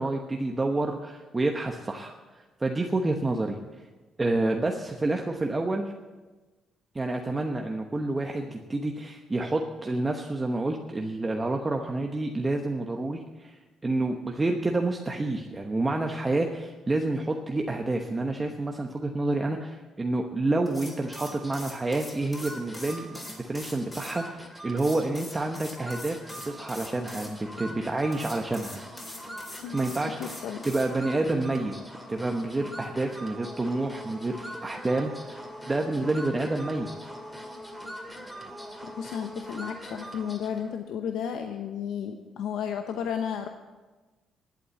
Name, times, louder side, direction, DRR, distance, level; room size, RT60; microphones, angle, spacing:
voice 1, 0.0-3.6 4.2-5.9 6.9-13.6 13.8-26.2 26.4-28.8 29.7-31.8 32.1-36.9, right 2 dB, 20° right, 2 dB, 1.0 m, -29 dB
sound 1, 20.6-24.2 24.8-27.3 28.1-30.9, left 1 dB, 25° left, 4.3 m, -43 dB
sound 2, 21.0-40.7, equal, 5° left, 2.2 m, -43 dB
voice 2, 30.2-30.6 38.8-43.5, left 8 dB, 85° left, 5 dB, 0.8 m, -33 dB
11.5 x 8.6 x 8.3 m, 1.2 s
cardioid pair, 90°, 0 cm